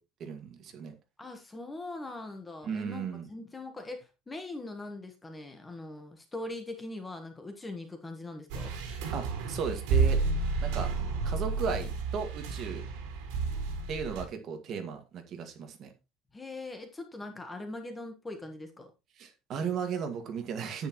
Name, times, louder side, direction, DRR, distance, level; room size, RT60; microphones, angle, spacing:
voice 1, 0.2-0.9 2.6-3.3 9.1-10.2 10.6-10.9 11.2-12.8 13.9-15.9 19.2-20.9, right 6 dB, 35° right, 5 dB, 1.9 m, -35 dB
voice 2, 1.2-8.7 16.3-18.9, left 2 dB, 10° left, 6 dB, 1.3 m, -41 dB
sound 1, 8.5-14.2, right 4 dB, 75° right, 4.2 m, -31 dB
9.9 x 9.5 x 3.1 m, 0.26 s
cardioid pair, 180°, 0 cm